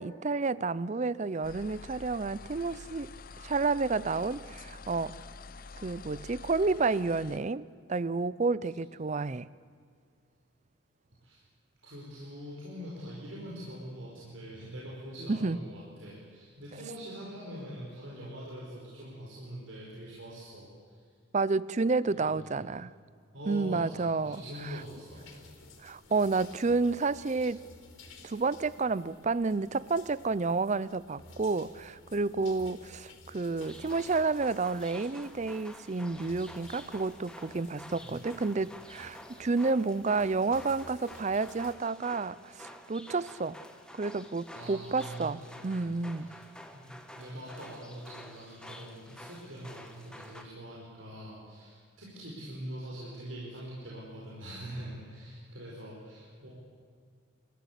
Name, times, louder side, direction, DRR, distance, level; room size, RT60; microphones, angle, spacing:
voice 1, 0.0-3.1 3.4-5.2 5.8-9.5 15.3-15.6 21.3-22.9 23.5-24.4 25.8-27.6 28.2-43.6 44.0-46.3, right 3 dB, 35° right, 19 dB, 0.5 m, -30 dB
sound 1, 1.4-7.4, left 4 dB, 45° left, 0.7 m, -47 dB
voice 2, 11.8-21.0 22.1-22.4 23.3-25.6 38.0-38.2 44.5-46.4 46.7-56.5, equal, 80° right, -5 dB, 4.9 m, -44 dB
sound 2, 24.2-41.7, left 2 dB, 80° left, 3.8 m, -54 dB
sound 3, 33.6-50.4, left 1 dB, 5° left, 1.4 m, -50 dB
27.5 x 14.5 x 8.3 m, 2.1 s
head